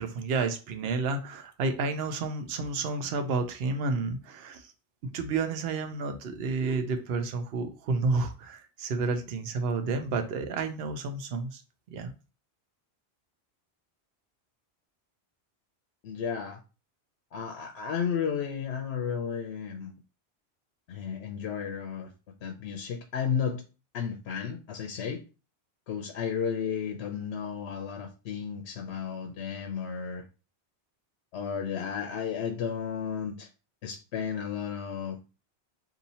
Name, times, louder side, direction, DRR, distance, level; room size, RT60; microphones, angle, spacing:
voice 1, 0.0-4.7 5.0-11.6 11.9-12.1, right 4 dB, 70° right, 0.8 m, -30 dB
voice 2, 16.0-16.6 17.3-19.9 20.9-22.1 22.4-23.6 23.9-25.2 25.9-30.2 31.3-33.5 33.8-35.2, left 7 dB, 75° left, 0.8 m, -33 dB
2.7 x 2.7 x 4.0 m
omnidirectional pair, 1.1 m